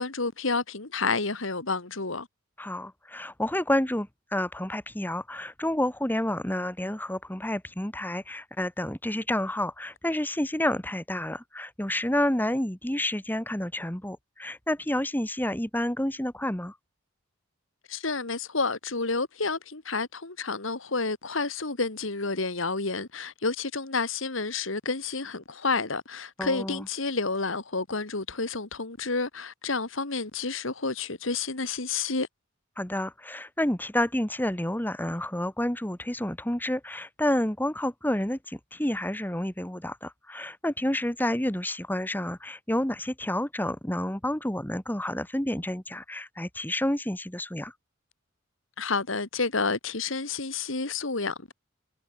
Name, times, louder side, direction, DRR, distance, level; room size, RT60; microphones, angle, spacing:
voice 1, 0.0-2.3 17.9-32.3 48.8-51.5, left 4 dB, 70° left, 2.2 m, -30 dB
voice 2, 2.6-16.7 26.4-26.9 32.8-47.7, left 1 dB, 10° left, 1.7 m, -29 dB
head